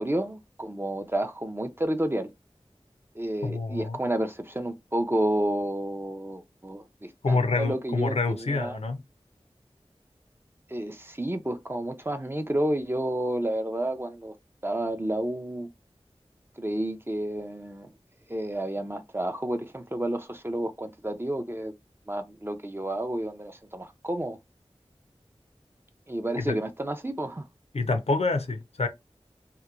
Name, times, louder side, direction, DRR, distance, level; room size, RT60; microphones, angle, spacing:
voice 1, 0.0-2.3 3.1-8.8 10.7-14.3 14.6-15.7 16.6-17.9 18.3-21.7 22.1-24.4 26.1-27.4, right 1 dB, 20° right, 0.4 m, -30 dB
voice 2, 3.4-4.0 7.2-9.0 26.4-26.6 27.7-28.9, left 3 dB, 75° left, 0.5 m, -27 dB
2.9 x 2.1 x 2.4 m
wide cardioid pair, 50°, 11 cm